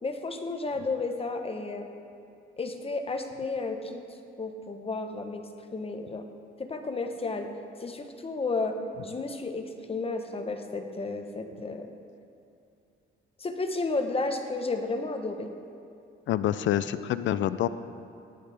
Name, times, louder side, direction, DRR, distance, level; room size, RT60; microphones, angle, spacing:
voice 1, 0.0-1.9 2.6-4.0 4.4-6.2 6.6-7.5 7.8-8.8 9.0-11.9 13.4-15.5, left 3 dB, 30° left, 5 dB, 1.0 m, -32 dB
voice 2, 16.3-17.7, left 11 dB, 70° left, 14 dB, 0.5 m, -27 dB
17.5 x 10.5 x 3.4 m, 2.6 s
cardioid pair, 90°, 20 cm